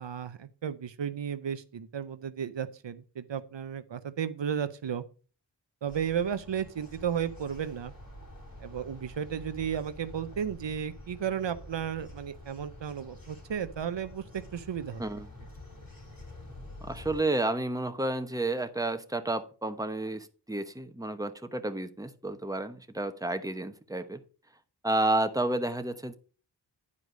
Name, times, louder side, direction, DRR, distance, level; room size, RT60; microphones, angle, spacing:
voice 1, 0.0-5.0 5.8-7.9 8.6-15.2, right 8 dB, 85° right, 12 dB, 0.7 m, -34 dB
sound 1, 5.9-17.2, left 1 dB, 50° left, 3.1 m, -48 dB
voice 2, 16.8-24.2 24.8-26.2, right 2 dB, 10° right, 9 dB, 1.0 m, -31 dB
9.7 x 4.9 x 5.1 m, 0.37 s
wide cardioid pair, 40°, 43 cm